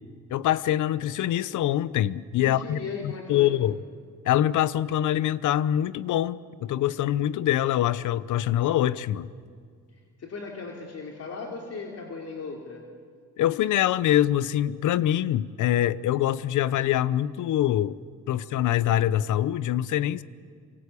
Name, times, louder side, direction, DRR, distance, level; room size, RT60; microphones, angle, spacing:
voice 1, 0.3-3.8 4.3-9.3 13.4-18.0 18.3-20.2, left 12 dB, 80° left, 18 dB, 0.8 m, -24 dB
voice 2, 2.4-3.6 10.2-12.9, left 4 dB, 55° left, 1 dB, 3.2 m, -37 dB
27.0 x 25.0 x 8.4 m, 2.1 s
cardioid pair, 90°, 30 cm